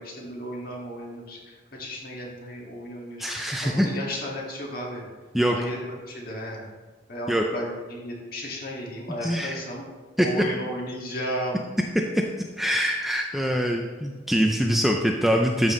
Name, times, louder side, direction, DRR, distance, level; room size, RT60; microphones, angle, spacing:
voice 1, 0.0-5.0 5.5-5.8 6.1-6.6 7.1-9.8 10.2-11.6, equal, 50° left, -2 dB, 1.8 m, -34 dB
voice 2, 3.2-3.9 5.3-5.6 7.3-7.4 9.2-9.6 10.2-10.3 12.1-12.2 12.6-15.7, equal, ahead, 1 dB, 0.4 m, -23 dB
12.5 x 5.7 x 3.1 m, 1.3 s
head